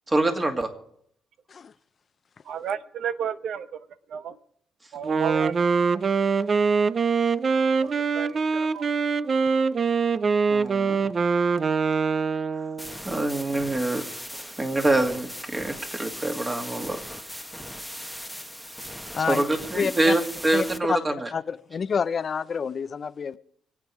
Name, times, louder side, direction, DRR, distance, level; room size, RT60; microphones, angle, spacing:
voice 1, 0.1-0.7 10.5-11.0 13.0-14.0 14.3-17.0 19.3-21.3, right 2 dB, 25° right, 5 dB, 2.4 m, -25 dB
voice 2, 2.5-3.7 4.1-4.4 4.9-5.6 7.8-8.9, right 8 dB, 70° right, 14 dB, 0.8 m, -32 dB
Wind instrument woodwind instrument, 5.0-13.0, right 5 dB, 40° right, 0.5 m, -23 dB
sound 1, 12.8-20.8, equal, 5° right, 1.0 m, -38 dB
voice 3, 19.8-20.1 20.5-21.0 21.3-23.4, left 6 dB, 45° left, 15 dB, 0.6 m, -28 dB
26.0 x 8.8 x 4.8 m, 0.67 s
cardioid pair, 90°, 0 cm